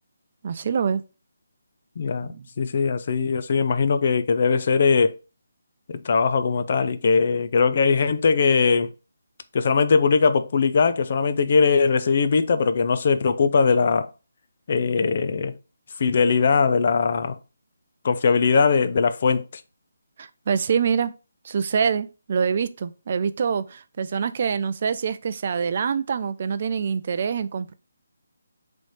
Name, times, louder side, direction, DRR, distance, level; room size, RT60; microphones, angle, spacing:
voice 1, 0.4-1.0 2.3-2.5 20.2-21.1 21.4-27.7, right 6 dB, 45° right, 0.4 m, -25 dB
voice 2, 2.0-5.2 5.9-8.9 9.5-14.1 14.7-15.6 16.0-17.4 18.0-19.5, left 5 dB, 45° left, 0.4 m, -20 dB
3.1 x 3.1 x 4.0 m
figure-of-eight pair, 160°, 0 cm